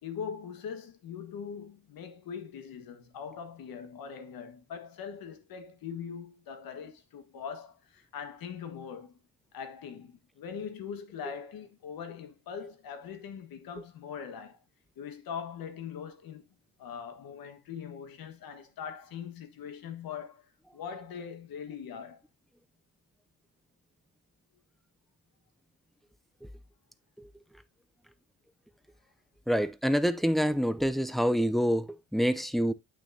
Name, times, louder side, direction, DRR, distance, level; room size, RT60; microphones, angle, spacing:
voice 1, 0.0-9.2 9.5-14.6 15.0-16.4 16.8-20.5 20.7-22.2, left 7 dB, 80° left, 1.6 m, -41 dB
voice 2, 29.5-32.7, equal, ahead, 0.4 m, -27 dB
8.5 x 6.2 x 2.7 m
cardioid pair, 140°, 35 cm